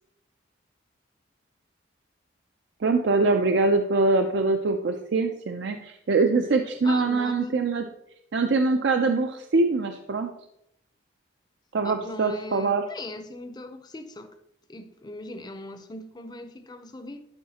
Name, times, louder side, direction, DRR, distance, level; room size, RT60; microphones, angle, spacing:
voice 1, 2.8-7.8 8.3-10.3 11.7-12.8, right 3 dB, 65° right, 0.5 m, -23 dB
voice 2, 6.8-7.6 11.8-14.4 14.7-17.3, left 2 dB, 20° left, 0.5 m, -40 dB
11.5 x 4.7 x 2.8 m
head